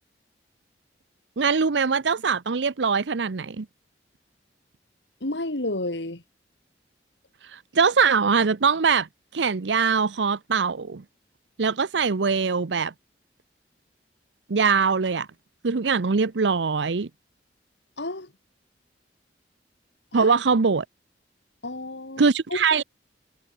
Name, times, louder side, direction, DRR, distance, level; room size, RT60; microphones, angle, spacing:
voice 1, 1.4-3.7 7.5-9.1 9.3-11.0 11.6-12.9 14.5-15.3 15.6-17.1 20.1-20.8 22.2-22.8, right 5 dB, 85° right, 0.7 m, -22 dB
voice 2, 5.2-6.2 18.0-18.3 20.1-20.3 21.6-22.6, left 2 dB, 80° left, 2.7 m, -31 dB
head